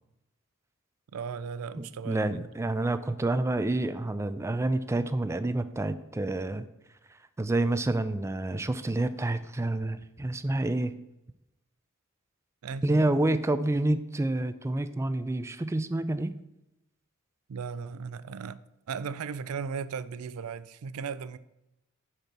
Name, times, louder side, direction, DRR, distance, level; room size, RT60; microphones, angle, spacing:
voice 1, 1.1-2.5 12.6-13.1 17.5-18.6 18.9-21.4, right 6 dB, 90° right, 0.4 m, -36 dB
voice 2, 1.8-6.7 7.4-10.9 12.8-16.3, right 2 dB, 15° right, 0.3 m, -28 dB
8.1 x 4.4 x 6.0 m
head